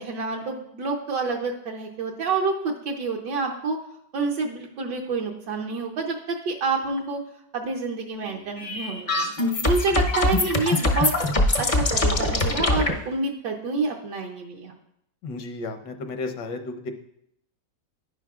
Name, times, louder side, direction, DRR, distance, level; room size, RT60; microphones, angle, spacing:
voice 1, 0.0-3.8 4.1-7.2 7.5-9.3 9.6-11.3 11.6-14.7, right 4 dB, 75° right, 0 dB, 1.5 m, -28 dB
sound 1, 8.6-12.9, left 2 dB, 50° left, 0.4 m, -23 dB
voice 2, 15.2-16.9, left 3 dB, 75° left, 7 dB, 1.5 m, -33 dB
10.5 x 9.9 x 2.4 m, 0.74 s
omnidirectional pair, 2.0 m